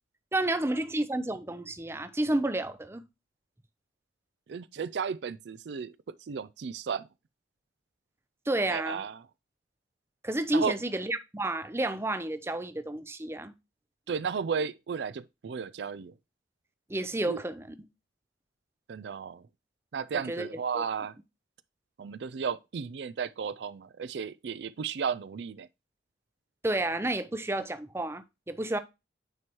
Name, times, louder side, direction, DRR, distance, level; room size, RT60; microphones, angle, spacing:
voice 1, 0.3-3.0 8.5-9.0 10.2-13.5 16.9-17.7 20.1-20.5 20.7-20.8 26.6-28.8, right 1 dB, 15° right, 0.5 m, -30 dB
voice 2, 4.5-7.1 8.7-9.2 10.5-10.8 14.1-16.1 17.3-17.4 18.9-19.5 19.9-21.2 22.0-25.7, right 6 dB, 70° right, 0.4 m, -34 dB
9.5 x 4.5 x 2.9 m
head